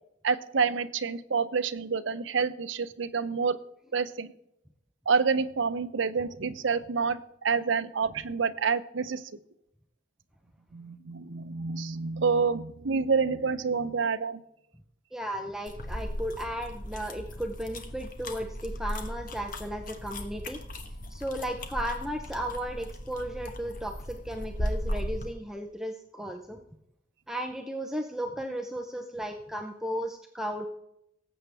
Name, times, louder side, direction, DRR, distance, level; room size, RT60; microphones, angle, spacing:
voice 1, 0.2-3.6 3.9-4.3 5.1-9.3 10.7-14.4, right 5 dB, 75° right, 12 dB, 0.6 m, -28 dB
voice 2, 15.1-20.6 21.1-26.6 27.3-30.7, equal, 5° right, 3 dB, 0.6 m, -35 dB
sound 1, 15.7-25.3, equal, 45° left, 1.2 m, -37 dB
18.5 x 7.9 x 3.4 m, 0.80 s
head